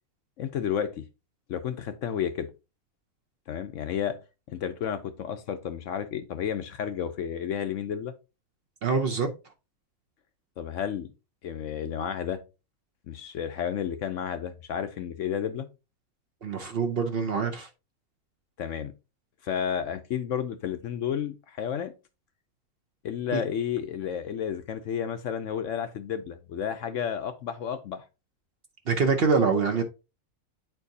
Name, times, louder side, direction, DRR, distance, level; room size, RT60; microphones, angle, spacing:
voice 1, 0.4-1.0 1.5-2.5 3.5-4.2 4.5-8.1 10.6-11.1 11.4-12.4 13.1-15.7 18.6-18.9 19.4-21.9 23.0-28.0, left 8 dB, 65° left, 0.8 m, -31 dB
voice 2, 8.8-9.3 16.4-17.7 23.3-23.4 28.9-29.8, right 5 dB, 50° right, 0.8 m, -25 dB
9.0 x 4.5 x 2.7 m
omnidirectional pair, 1.6 m